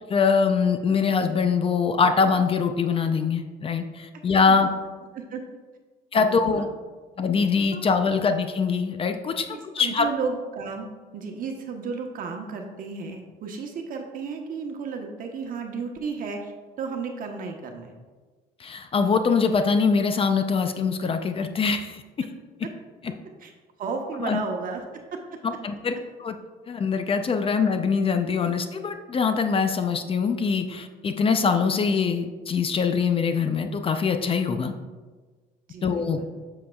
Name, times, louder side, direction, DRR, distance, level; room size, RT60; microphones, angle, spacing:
voice 1, 0.1-4.7 6.1-6.7 7.2-9.5 9.7-10.1 18.6-22.3 24.2-24.4 25.4-25.9 26.2-26.3 26.7-34.7 35.8-36.2, left 5 dB, 35° left, 7 dB, 0.5 m, -23 dB
voice 2, 6.1-6.7 7.7-7.8 9.5-16.5 16.8-17.9 22.6-22.7 23.4-23.5 23.8-25.4 35.7-36.4, right 5 dB, 55° right, 3 dB, 1.0 m, -33 dB
7.5 x 6.8 x 2.3 m, 1.4 s
cardioid pair, 110°, 17 cm